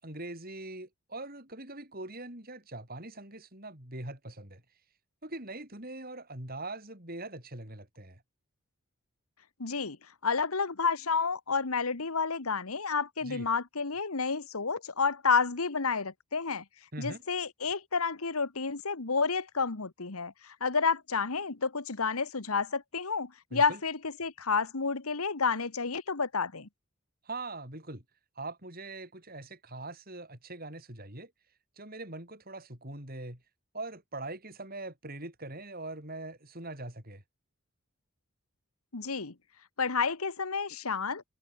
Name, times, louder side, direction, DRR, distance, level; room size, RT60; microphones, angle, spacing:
voice 1, 0.0-4.6 5.2-8.2 13.2-13.5 16.9-17.2 23.5-23.8 27.2-28.0 28.4-31.3 31.8-33.4 33.7-37.2, right 2 dB, 40° right, 7.1 m, -42 dB
voice 2, 9.6-10.0 10.2-16.6 17.0-26.7 38.9-39.3 39.8-41.2, left 5 dB, 85° left, 1.5 m, -30 dB
head